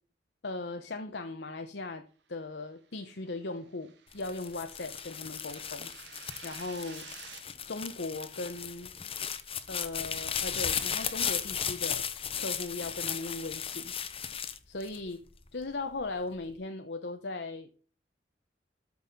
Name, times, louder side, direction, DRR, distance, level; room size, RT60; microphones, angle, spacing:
voice 1, 0.4-2.0 2.3-5.9 6.4-7.1 7.7-8.9 9.7-12.0 12.4-13.9 14.7-15.2 15.5-17.7, left 3 dB, 70° left, 7 dB, 1.0 m, -38 dB
sound 1, 3.0-7.4, right 7 dB, 80° right, 1.9 m, -52 dB
sound 2, 4.1-15.5 16.0-16.6, left 8 dB, 35° left, 1.0 m, -36 dB
13.5 x 5.6 x 4.1 m, 0.39 s
head